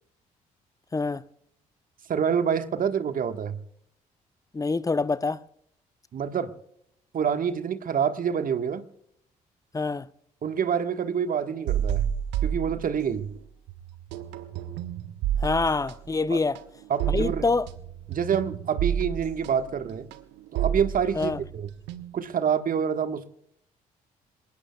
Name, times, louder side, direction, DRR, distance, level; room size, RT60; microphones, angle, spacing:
voice 1, 0.9-1.2 4.5-5.4 9.7-10.1 15.4-16.6 17.1-17.7 21.1-21.4, left 3 dB, 20° left, 0.8 m, -26 dB
voice 2, 2.1-3.6 6.1-6.5 7.1-8.8 10.4-12.1 12.4-13.3 16.3-16.4 16.9-17.5 18.1-20.1 20.5-21.7 22.1-23.3, right 7 dB, 50° right, 1.4 m, -27 dB
sound 1, 11.7-13.4 13.7-22.3, right 9 dB, 70° right, 1.0 m, -30 dB
27.0 x 18.5 x 2.3 m
figure-of-eight pair, 45°, 19 cm